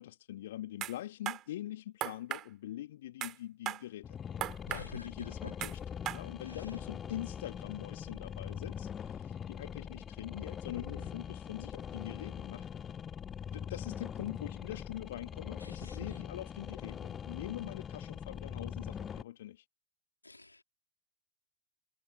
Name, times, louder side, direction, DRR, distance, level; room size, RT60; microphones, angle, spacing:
voice 1, 0.0-4.4 4.7-12.7 13.5-19.6, left 13 dB, 55° left, 3.4 m, -44 dB
sound 1, 0.8-0.9 1.3-1.4 2.0-2.5 3.2-3.3 3.7-3.8 4.4-4.8 5.6-5.7 6.1-6.2, right 13 dB, 35° right, 3.4 m, -36 dB
sound 2, 4.0-19.2, left 8 dB, 25° left, 3.0 m, -42 dB
voice 2, 4.7-5.5 6.5-6.6 10.7-11.1 15.6-16.0 20.2-20.6, left 2 dB, 80° left, 4.1 m, -49 dB
figure-of-eight pair, 90°, 0 cm